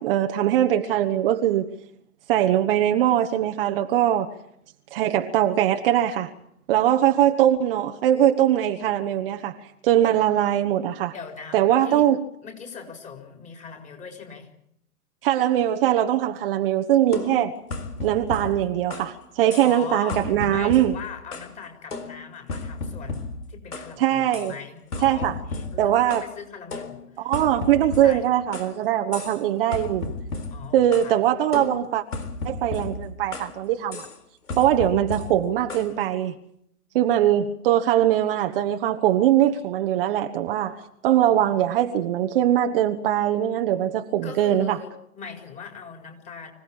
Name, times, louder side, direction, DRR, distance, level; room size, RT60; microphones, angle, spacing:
voice 1, 0.0-1.7 2.3-4.4 4.9-6.3 6.7-11.1 11.5-12.2 15.2-17.6 18.0-21.0 24.0-24.5 25.0-25.3 25.8-26.2 27.2-30.1 30.7-32.0 32.4-34.1 34.6-36.3 36.9-44.8, right 11 dB, 35° right, 1.2 m, -21 dB
voice 2, 11.1-12.1 12.4-14.5 19.6-27.3 27.6-28.2 30.5-31.2 44.2-46.5, left 6 dB, 15° left, 4.5 m, -40 dB
sound 1, 17.1-19.2 19.5-19.8 20.1-21.6 21.9-23.9 24.3-24.5 24.9-26.3 26.7-28.8 29.1-29.4 29.7-31.1 31.5-33.6 33.9-34.2 34.5-35.9, left 3 dB, 80° left, 4.1 m, -34 dB
25.5 x 17.0 x 8.6 m
hypercardioid pair, 130°, 46 cm